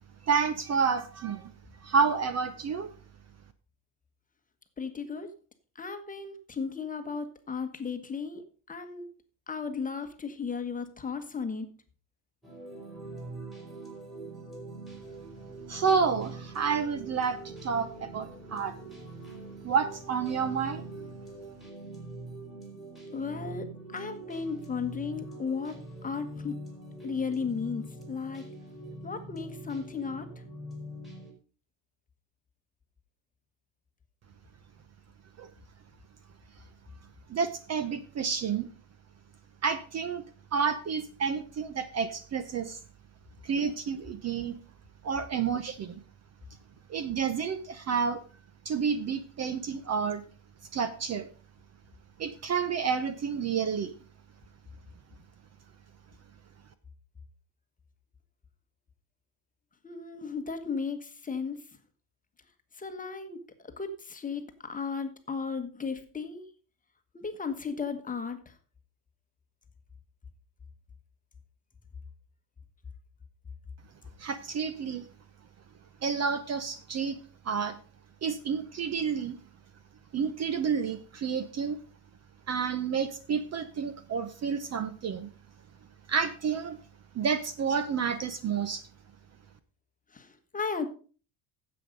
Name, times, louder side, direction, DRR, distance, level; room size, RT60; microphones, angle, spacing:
voice 1, 0.3-1.5 1.8-2.9 15.7-18.7 19.6-20.9 35.4-35.5 37.3-38.7 39.6-40.2 40.5-42.8 43.4-44.6 45.0-46.0 46.9-48.2 48.6-50.2 50.7-51.3 52.2-53.9 74.2-75.1 76.0-77.2 77.4-77.8 78.2-79.3 80.1-81.8 82.5-85.3 86.1-86.8 87.1-88.8, right 6 dB, 35° right, 12 dB, 0.8 m, -30 dB
voice 2, 4.8-5.3 5.7-9.1 9.5-11.7 23.1-23.7 23.9-25.7 26.0-26.6 27.0-28.5 29.0-30.3 59.8-61.6 62.8-63.4 63.8-66.4 67.1-68.5 90.1-90.3 90.5-90.9, left 5 dB, 15° left, 7 dB, 1.3 m, -35 dB
sound 1, 12.4-31.3, right 2 dB, ahead, 3.9 m, -43 dB
10.0 x 7.9 x 5.2 m, 0.39 s
cardioid pair, 140°, 46 cm